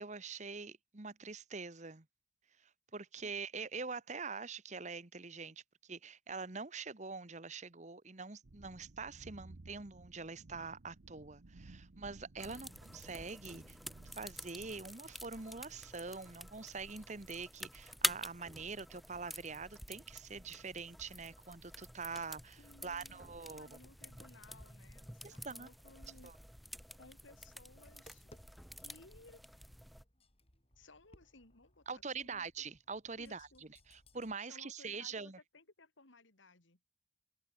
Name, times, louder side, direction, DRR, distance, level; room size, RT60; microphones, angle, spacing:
voice 1, 0.0-2.0 2.6-13.8 14.1-23.7 25.2-25.7 26.2-26.3 31.9-33.5 33.9-35.4, right 4 dB, 40° right, 1.2 m, -45 dB
sound 1, 8.4-14.9, right 2 dB, 70° right, 0.9 m, -57 dB
sound 2, 12.4-30.0, equal, ahead, 1.9 m, -47 dB
voice 2, 12.5-12.8 22.6-26.3 27.0-28.3 28.8-29.5 30.8-32.5 33.2-33.6 34.4-36.8, left 2 dB, 80° left, 3.1 m, -61 dB
Tap, 27.6-34.3, left 1 dB, 30° left, 7.4 m, -65 dB
head